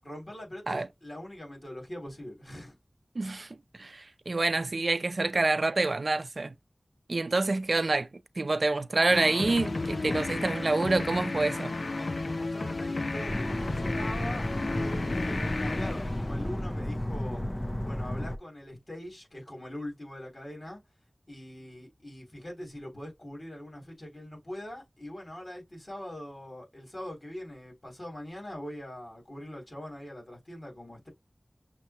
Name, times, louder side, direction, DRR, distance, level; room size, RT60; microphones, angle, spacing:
voice 1, 0.0-2.8 11.9-17.4 17.8-20.8 21.3-31.1, left 1 dB, 55° left, 3.4 m, -42 dB
voice 2, 3.2-6.5 7.1-8.1 8.4-11.7, right 3 dB, 70° right, 0.4 m, -27 dB
sound 1, 9.1-16.8, left 2 dB, 80° left, 0.4 m, -33 dB
sound 2, 13.3-18.4, left 1 dB, 25° left, 0.5 m, -33 dB
6.5 x 2.2 x 2.9 m
wide cardioid pair, 60°, 0 cm